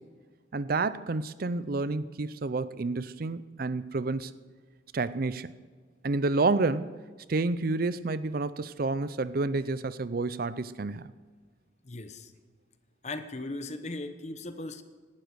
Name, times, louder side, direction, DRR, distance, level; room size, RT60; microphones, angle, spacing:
voice 1, 0.5-4.3 4.9-5.5 6.0-6.9 7.3-11.1, right 3 dB, 50° right, 16 dB, 0.5 m, -29 dB
voice 2, 11.8-12.3 13.0-14.8, left 2 dB, 35° left, 9 dB, 1.0 m, -38 dB
18.0 x 12.0 x 6.4 m, 1.5 s
head